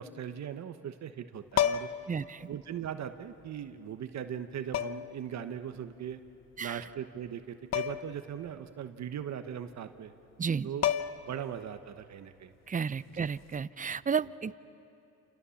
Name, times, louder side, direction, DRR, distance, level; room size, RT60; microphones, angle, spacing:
voice 1, 0.0-1.9 2.5-6.2 6.6-10.1 10.6-10.9 11.3-12.5 13.1-13.3, right 9 dB, 65° right, 9 dB, 1.2 m, -39 dB
sound 1, 1.5-2.1 3.4-3.5 4.7-5.2 7.7-8.2 8.5-8.6 10.4-10.5 10.8-11.4 13.4-13.6, left 10 dB, 60° left, 0.9 m, -30 dB
voice 2, 2.1-2.5 6.6-6.8 10.4-10.7 12.7-14.6, right 6 dB, 25° right, 17 dB, 0.6 m, -32 dB
29.0 x 28.5 x 7.2 m, 2.8 s
cardioid pair, 90°, 30 cm